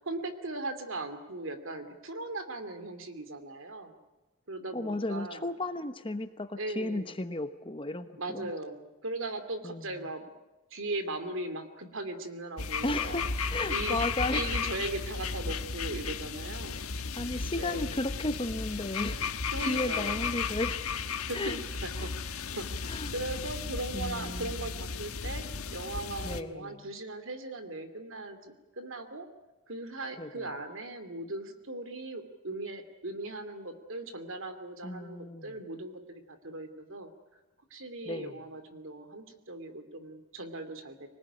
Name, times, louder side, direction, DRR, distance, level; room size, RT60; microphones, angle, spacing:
voice 1, 0.0-4.0 4.5-5.5 6.6-7.1 8.2-10.3 10.7-13.3 13.7-16.8 17.5-17.9 19.5-20.2 21.2-25.5 25.7-29.3 29.7-37.1 37.7-41.1, right 2 dB, 60° right, 9 dB, 2.6 m, -39 dB
voice 2, 4.7-8.5 9.6-9.9 12.8-14.5 16.1-16.2 16.7-16.8 17.2-19.2 19.6-20.8 21.3-21.6 22.0-22.1 22.9-23.1 23.9-24.5 26.2-26.8 30.2-30.5 34.8-35.5 38.1-38.4, left 2 dB, 25° left, 9 dB, 1.1 m, -34 dB
sound 1, 12.6-26.4, left 5 dB, 80° left, 1.3 m, -34 dB
25.5 x 19.5 x 10.0 m, 1.1 s
head